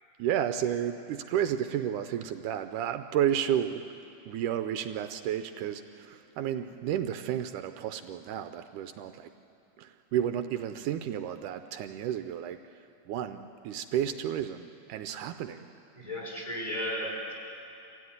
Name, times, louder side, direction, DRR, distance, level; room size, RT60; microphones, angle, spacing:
voice 1, 0.2-3.8 4.3-9.3 9.8-15.7, right 10 dB, 80° right, 8 dB, 2.1 m, -32 dB
voice 2, 15.9-17.3, equal, 10° left, -3 dB, 5.1 m, -34 dB
25.5 x 16.5 x 9.6 m, 2.7 s
omnidirectional pair, 3.7 m